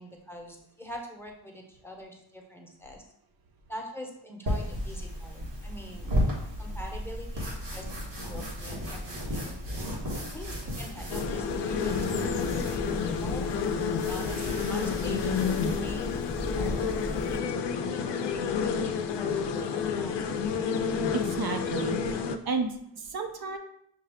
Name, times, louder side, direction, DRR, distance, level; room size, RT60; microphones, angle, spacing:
voice 1, 0.0-3.0 3.7-6.2 6.6-7.8 8.1-9.6 10.3-13.4 13.8-14.4 14.7-15.3 15.8-17.5 17.9-20.4, left 1 dB, 5° left, 1 dB, 0.8 m, -44 dB
sound 1, 4.5-17.4, equal, 85° right, 1.6 m, -34 dB
sound 2, 11.1-22.4, left 6 dB, 75° left, 0.5 m, -30 dB
voice 2, 21.1-23.6, right 4 dB, 60° right, 4 dB, 0.6 m, -32 dB
6.0 x 2.3 x 3.5 m, 0.72 s
cardioid pair, 70°, 42 cm